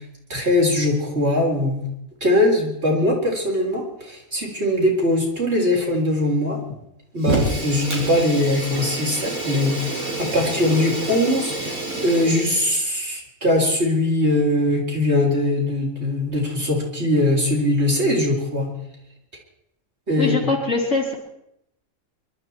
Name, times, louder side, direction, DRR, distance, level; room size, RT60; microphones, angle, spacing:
voice 1, 0.3-1.8 2.2-6.6 7.1-11.8 12.0-18.7 20.1-20.5, left 1 dB, 50° right, -2 dB, 4.4 m, -21 dB
Fire, 7.2-12.8, right 1 dB, 85° right, 4.2 m, -28 dB
voice 2, 20.2-21.1, left 3 dB, 60° left, -3 dB, 3.9 m, -22 dB
24.0 x 12.5 x 4.5 m, 0.79 s
omnidirectional pair, 1.4 m